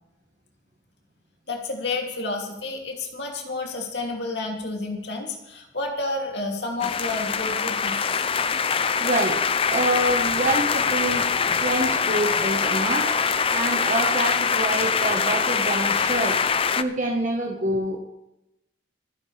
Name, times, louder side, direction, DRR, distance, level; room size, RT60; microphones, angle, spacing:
voice 1, 1.5-8.3, left 3 dB, 70° left, 1 dB, 2.8 m, -30 dB
sound 1, 6.8-16.8, left 6 dB, 30° left, 0.6 m, -23 dB
voice 2, 9.0-9.4 9.7-11.3 11.6-16.4 16.8-18.0, right 2 dB, 45° right, 1 dB, 1.4 m, -26 dB
26.5 x 10.5 x 3.4 m, 0.89 s
head